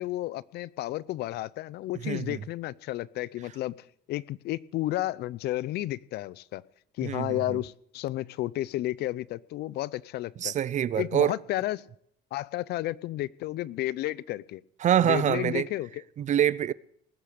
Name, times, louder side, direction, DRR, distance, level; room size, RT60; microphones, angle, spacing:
voice 1, 0.0-6.6 7.0-10.5 11.0-11.9 12.3-14.6 15.0-16.0, left 15 dB, 75° left, 0.6 m, -32 dB
voice 2, 2.0-2.4 7.0-7.6 10.4-11.4 14.8-15.7 16.2-16.7, right 10 dB, 45° right, 0.5 m, -25 dB
19.5 x 8.5 x 6.5 m
cardioid pair, 110°, 17 cm